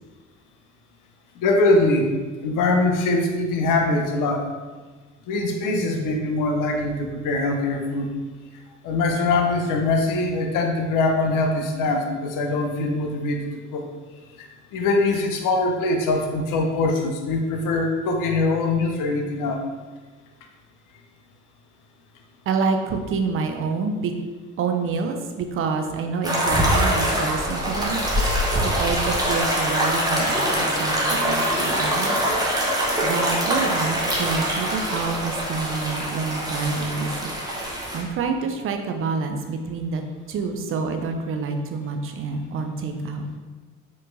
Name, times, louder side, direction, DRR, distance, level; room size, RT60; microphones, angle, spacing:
voice 1, 1.4-2.1 2.4-4.5 5.3-8.1 8.8-13.9 14.4-19.7, left 2 dB, 50° left, 3 dB, 0.7 m, -22 dB
voice 2, 22.5-24.1 24.6-28.0 28.3-32.4 33.0-37.3 37.9-40.0 40.3-43.3, right 5 dB, 35° right, 5 dB, 0.5 m, -27 dB
sound 1, 26.2-38.0, equal, 10° right, 0.9 m, -23 dB
4.3 x 3.1 x 2.6 m, 1.3 s
figure-of-eight pair, 50°, 41 cm